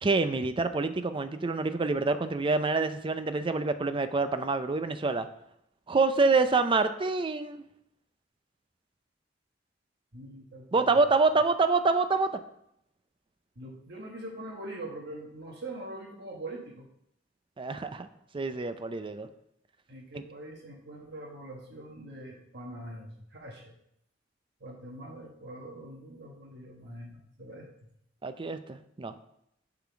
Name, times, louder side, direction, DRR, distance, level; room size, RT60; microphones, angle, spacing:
voice 1, 0.0-5.3 5.9-7.6 10.7-12.3 17.6-18.1 18.3-19.3 20.1-20.2 28.2-29.1, right 3 dB, 25° right, 10 dB, 0.5 m, -26 dB
voice 2, 10.1-11.0 13.6-16.9 19.9-23.8 24.6-27.9, right 1 dB, 60° right, -1 dB, 1.3 m, -43 dB
7.2 x 3.9 x 5.9 m, 0.75 s
head